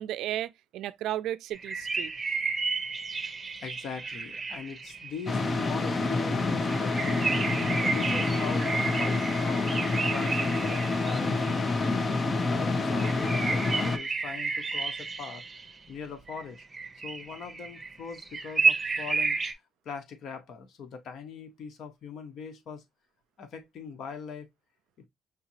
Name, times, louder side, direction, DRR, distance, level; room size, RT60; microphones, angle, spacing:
voice 1, 0.0-2.1, right 13 dB, 85° right, 0.3 m, -34 dB
sound 1, 1.5-5.9 6.6-11.7 13.0-15.8 16.3-19.5, right 4 dB, 30° right, 1.0 m, -32 dB
voice 2, 3.6-7.3 7.8-9.8 10.1-11.9 12.5-15.4 15.9-16.6 17.0-19.4 19.8-22.8 23.4-24.5 25.0-25.1, left 6 dB, 70° left, 1.1 m, -41 dB
sound 2, 5.3-14.0, left 3 dB, 35° left, 0.8 m, -27 dB
5.5 x 2.7 x 2.9 m
cardioid pair, 90°, 0 cm